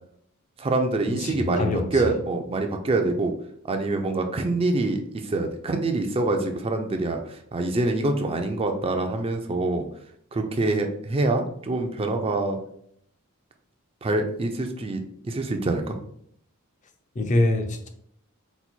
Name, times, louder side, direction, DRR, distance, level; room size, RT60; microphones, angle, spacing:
voice 1, 0.6-3.3 3.7-9.8 10.3-12.6 14.0-16.0, right 2 dB, 25° right, 0.4 m, -25 dB
voice 2, 1.2-2.1 17.2-17.9, left 2 dB, 35° left, 0.5 m, -24 dB
4.0 x 2.2 x 4.3 m
head